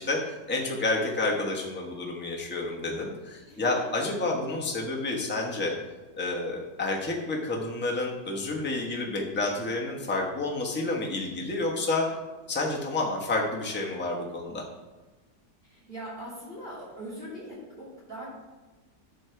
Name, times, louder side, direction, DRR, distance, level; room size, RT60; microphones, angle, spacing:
voice 1, 0.0-5.7 6.2-12.1 12.5-14.6, left 2 dB, 10° left, -1 dB, 0.9 m, -29 dB
voice 2, 15.6-18.3, right 1 dB, 35° right, -7 dB, 2.8 m, -41 dB
11.5 x 6.2 x 3.4 m, 1.2 s
omnidirectional pair, 1.8 m